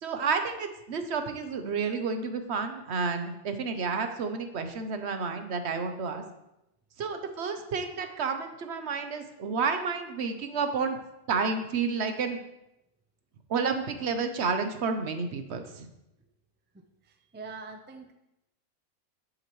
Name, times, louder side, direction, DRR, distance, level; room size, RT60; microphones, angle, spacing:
voice 1, 0.0-6.2 7.0-11.0 11.3-12.4 13.5-15.9, right 5 dB, 60° right, 7 dB, 1.0 m, -30 dB
voice 2, 16.7-18.1, right 4 dB, 10° right, 5 dB, 0.5 m, -44 dB
10.5 x 7.9 x 3.1 m, 0.89 s
omnidirectional pair, 1.4 m